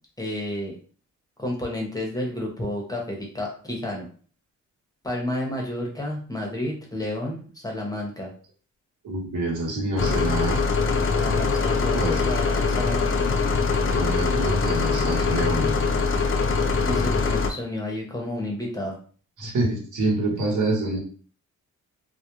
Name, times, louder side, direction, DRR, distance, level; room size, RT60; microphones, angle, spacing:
voice 1, 0.2-0.8 1.4-4.1 5.0-8.3 11.2-13.2 16.9-19.0, left 1 dB, 10° left, -1 dB, 0.7 m, -31 dB
voice 2, 9.0-10.6 11.9-12.3 13.8-15.7 19.4-21.0, right 2 dB, 75° right, -2 dB, 1.0 m, -26 dB
sound 1, 10.0-17.5, left 4 dB, 45° left, 0.4 m, -23 dB
2.3 x 2.1 x 2.9 m, 0.42 s
cardioid pair, 110°, 31 cm